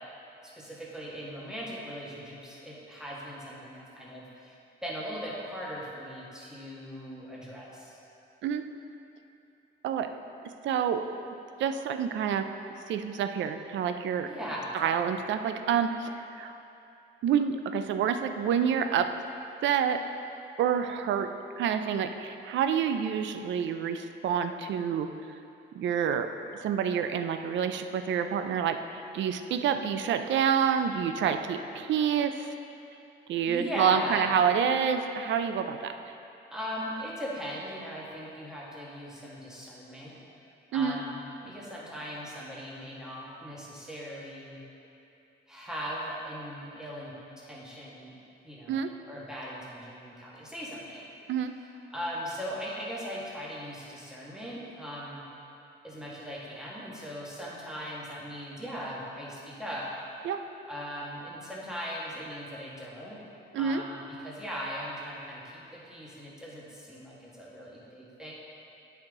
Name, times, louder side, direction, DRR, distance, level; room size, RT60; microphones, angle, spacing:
voice 1, 0.4-8.0 14.2-15.1 33.5-34.3 36.5-40.2 40.7-44.6 45.5-48.2 48.4-51.1 51.6-55.2 55.8-59.9 60.7-63.2 63.5-68.3, equal, 5° right, -6 dB, 1.8 m, -39 dB
voice 2, 10.6-11.1 11.6-12.5 12.9-14.3 14.7-16.5 17.2-19.1 19.6-20.0 20.6-21.3 21.6-25.1 25.8-26.3 26.6-32.5 33.3-36.2 40.7-41.0 48.7-48.9 51.3-51.5 60.2-60.4 63.5-63.8, right 7 dB, 70° right, 8 dB, 0.5 m, -28 dB
8.9 x 5.8 x 3.7 m, 2.7 s
cardioid pair, 90°, 20 cm